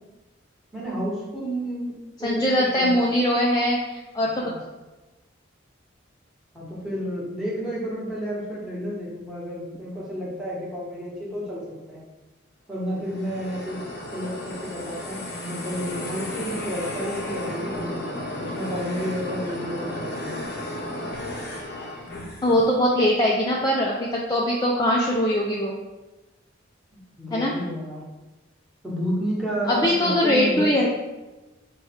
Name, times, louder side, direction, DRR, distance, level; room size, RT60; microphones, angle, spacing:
voice 1, 0.7-1.9 2.2-2.9 4.4-4.6 6.5-12.0 12.7-13.8 14.1-20.3 26.9-28.0 28.8-30.7, equal, ahead, -6 dB, 1.2 m, -31 dB
voice 2, 2.2-4.4 22.4-25.7 27.3-27.5 29.7-30.9, equal, 20° left, -3 dB, 0.4 m, -21 dB
sound 1, 12.9-22.7, left 1 dB, 55° left, 0.7 m, -33 dB
4.8 x 2.3 x 4.2 m, 1.1 s
head